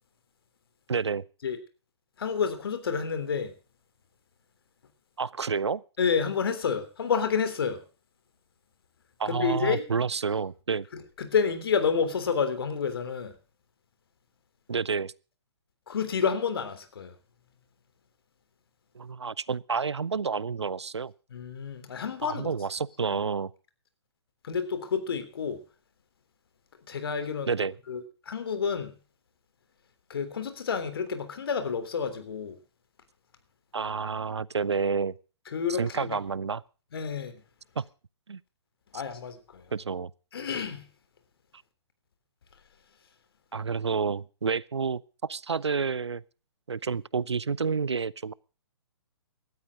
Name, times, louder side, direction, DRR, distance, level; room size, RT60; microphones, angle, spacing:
voice 1, 0.9-1.3 5.2-5.8 9.2-10.9 14.7-15.1 18.9-21.1 22.2-23.5 27.5-27.7 33.7-35.1 35.8-36.6 37.8-37.9 38.3-38.4 39.7-40.1 43.5-46.2 46.7-48.3, right 5 dB, 75° right, 0.6 m, -29 dB
voice 2, 2.2-3.5 6.0-7.8 9.2-9.8 10.9-13.3 15.9-17.1 21.3-22.5 24.4-25.6 26.9-27.5 27.9-28.9 30.1-32.6 35.5-36.2 36.9-37.4 38.9-39.6 40.3-40.9, left 6 dB, 60° left, 3.4 m, -29 dB
18.0 x 13.0 x 3.7 m
figure-of-eight pair, 125°, 14 cm